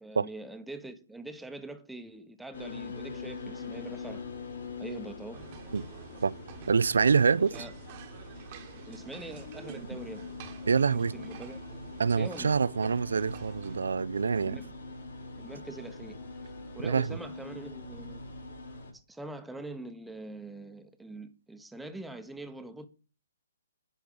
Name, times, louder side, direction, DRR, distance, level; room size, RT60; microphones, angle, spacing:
voice 1, 0.0-4.3 4.8-5.4 7.5-7.7 8.9-10.3 10.9-11.6 12.1-12.6 14.4-14.8 15.4-18.2 19.1-22.9, right 2 dB, 5° right, 0.8 m, -43 dB
sound 1, 2.5-18.9, left 3 dB, 65° left, 3.2 m, -43 dB
sound 2, 5.3-13.8, right 8 dB, 40° right, 1.1 m, -50 dB
voice 2, 6.7-7.6 10.7-11.1 12.0-14.6 16.8-17.2, right 5 dB, 70° right, 0.3 m, -26 dB
9.8 x 4.5 x 5.4 m
figure-of-eight pair, 130°, 0 cm